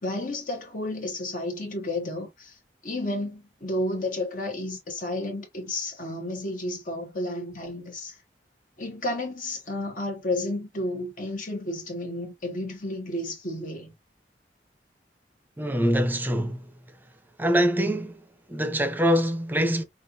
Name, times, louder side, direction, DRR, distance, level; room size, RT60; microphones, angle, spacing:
voice 1, 0.0-2.6 2.8-8.2 8.8-13.9, left 1 dB, 50° left, 1.3 m, -32 dB
voice 2, 15.6-16.7 17.4-18.2 18.5-19.8, equal, 10° right, 0.7 m, -24 dB
5.3 x 2.5 x 2.8 m
head